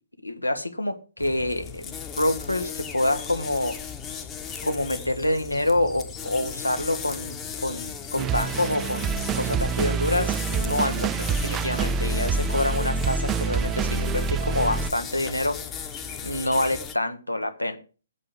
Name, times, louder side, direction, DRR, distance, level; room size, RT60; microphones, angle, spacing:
voice 1, 0.2-3.8 4.6-7.4 7.6-15.6 16.2-17.8, left 1 dB, 85° left, 7 dB, 1.5 m, -27 dB
sound 1, 1.2-17.0, left 7 dB, 15° left, 1.0 m, -37 dB
sound 2, 8.2-14.9, right 5 dB, 15° right, 0.4 m, -26 dB
8.3 x 5.5 x 7.7 m, 0.35 s
figure-of-eight pair, 130°, 0 cm